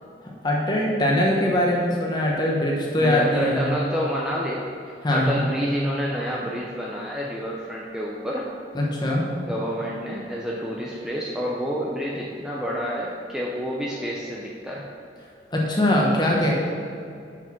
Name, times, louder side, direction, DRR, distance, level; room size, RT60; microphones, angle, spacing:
voice 1, 0.4-3.7 5.0-5.4 8.7-9.2 15.5-16.5, left 1 dB, 25° left, -2 dB, 1.2 m, -22 dB
voice 2, 3.0-4.7 5.1-8.5 9.5-14.9 16.3-16.5, equal, 5° right, -4 dB, 0.6 m, -28 dB
6.7 x 6.1 x 4.5 m, 2.5 s
head